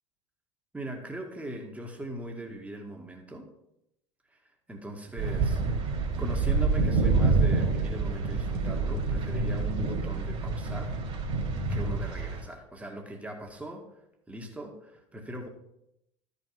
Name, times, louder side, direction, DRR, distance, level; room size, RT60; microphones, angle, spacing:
voice 1, 0.7-3.5 4.7-5.9 6.2-11.0 11.7-13.9 14.3-15.5, right 1 dB, 10° right, 2 dB, 2.0 m, -40 dB
sound 1, 5.2-12.4, right 3 dB, 40° right, 3.3 m, -27 dB
13.0 x 5.5 x 5.9 m, 0.81 s
figure-of-eight pair, 70°, 15 cm